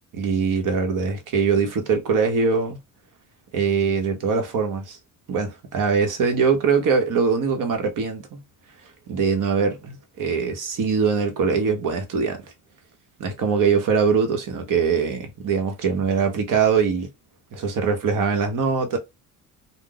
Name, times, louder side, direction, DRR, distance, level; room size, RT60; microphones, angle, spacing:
voice 1, 0.1-2.8 3.5-5.0 5.3-8.4 9.1-12.4 13.2-17.1 17.5-19.0, right 5 dB, 60° right, 1.0 m, -22 dB
2.4 x 2.0 x 3.8 m
cardioid pair, 100°, 37 cm